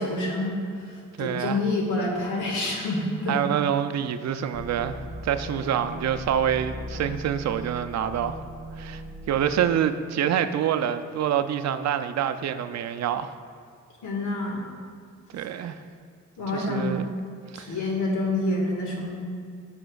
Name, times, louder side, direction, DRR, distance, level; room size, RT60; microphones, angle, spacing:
voice 1, 0.0-3.4 14.0-14.6 16.4-16.9 17.5-19.2, left 2 dB, 75° left, -1 dB, 1.7 m, -27 dB
voice 2, 1.2-1.6 3.3-5.0 5.2-8.4 8.8-13.3 15.3-15.8 16.5-17.1 17.5-17.8, right 9 dB, 60° right, 10 dB, 0.5 m, -26 dB
sound 1, 4.5-9.8, equal, 15° right, 0.7 m, -38 dB
10.0 x 7.0 x 2.4 m, 2.2 s
cardioid pair, 75°, 31 cm